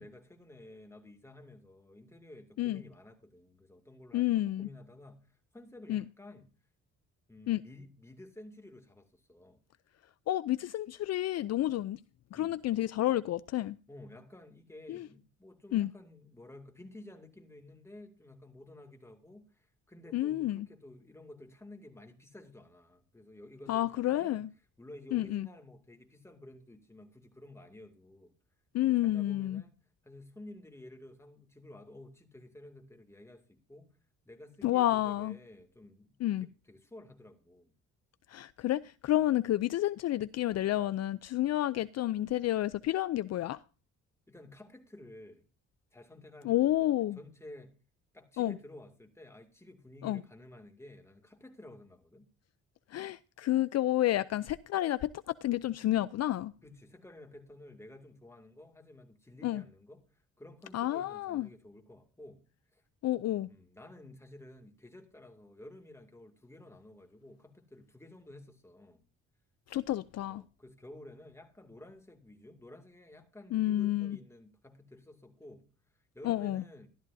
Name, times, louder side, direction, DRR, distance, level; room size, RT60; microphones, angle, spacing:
voice 1, 0.0-6.5 7.3-9.7 12.3-12.6 13.9-24.4 24.8-28.3 28.8-29.8 30.0-34.0 34.3-37.7 39.1-39.2 44.3-45.4 45.9-47.7 48.1-52.3 56.6-62.4 62.7-62.8 63.5-69.0 70.3-75.7 76.1-76.9, left 1 dB, 10° left, 2.4 m, -52 dB
voice 2, 4.1-4.7 5.9-6.0 7.5-7.6 10.3-12.0 12.3-13.8 14.9-15.1 15.7-15.9 20.1-20.7 23.7-24.5 25.1-25.5 28.7-29.6 34.6-35.4 36.2-36.5 38.3-43.6 46.4-47.2 48.4-48.6 50.0-50.2 52.9-56.5 59.4-59.6 60.7-61.5 63.0-63.5 69.7-70.4 73.5-74.2 76.2-76.6, left 14 dB, 55° left, 0.5 m, -30 dB
13.5 x 12.5 x 2.7 m
cardioid pair, 90°, 30 cm